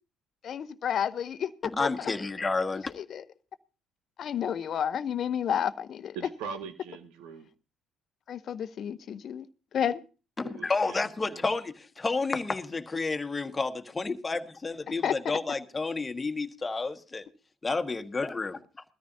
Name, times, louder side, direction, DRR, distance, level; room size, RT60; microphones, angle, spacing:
voice 1, 0.4-2.1 2.9-3.2 4.2-6.2 8.3-9.5 9.7-10.0 15.0-15.2, left 8 dB, 55° left, 0.8 m, -31 dB
voice 2, 1.8-2.9 10.4-17.2 17.6-18.6, left 3 dB, 25° left, 1.5 m, -30 dB
voice 3, 6.1-7.5 10.4-11.4, right 6 dB, 80° right, 1.3 m, -41 dB
21.0 x 13.5 x 2.7 m
hypercardioid pair, 55°, 0 cm